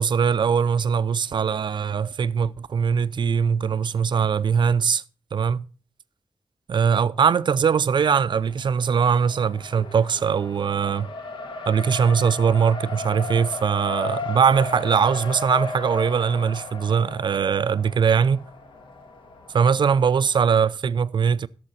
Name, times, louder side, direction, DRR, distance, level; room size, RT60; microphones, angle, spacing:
voice 1, 0.0-5.0 5.3-5.6 6.7-11.1 11.7-18.5 19.5-21.5, right 6 dB, 70° right, 0.5 m, -21 dB
Race car auto racing, 7.9-20.5, left 3 dB, 80° left, 1.8 m, -36 dB
16.5 x 7.0 x 4.2 m
wide cardioid pair, 145°, 8 cm